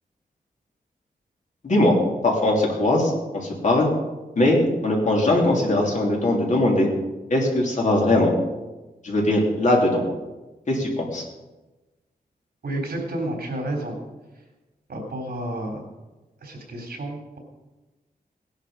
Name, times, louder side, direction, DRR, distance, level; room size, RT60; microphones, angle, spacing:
voice 1, 1.6-1.9 2.2-3.9 4.4-6.9 7.3-8.3 9.0-10.0 10.7-11.2, left 1 dB, 50° left, -1 dB, 3.2 m, -20 dB
voice 2, 12.6-14.0 14.9-15.8 16.4-17.4, right 1 dB, 75° right, 1 dB, 3.8 m, -30 dB
18.0 x 11.0 x 5.1 m, 1.1 s
wide cardioid pair, 180°, 16 cm